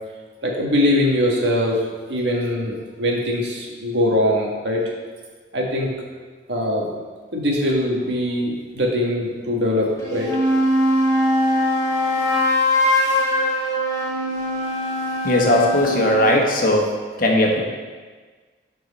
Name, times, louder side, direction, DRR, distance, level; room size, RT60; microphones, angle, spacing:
voice 1, 0.4-1.8 2.1-4.8 5.5-5.9 6.5-6.9 7.3-10.4, left 1 dB, 65° right, -1 dB, 1.6 m, -22 dB
sound 1, 10.0-16.2, left 1 dB, 20° left, 1.9 m, -21 dB
voice 2, 15.2-16.9 17.2-17.6, left 1 dB, 50° left, 0 dB, 1.3 m, -18 dB
12.5 x 4.7 x 4.2 m, 1.4 s
head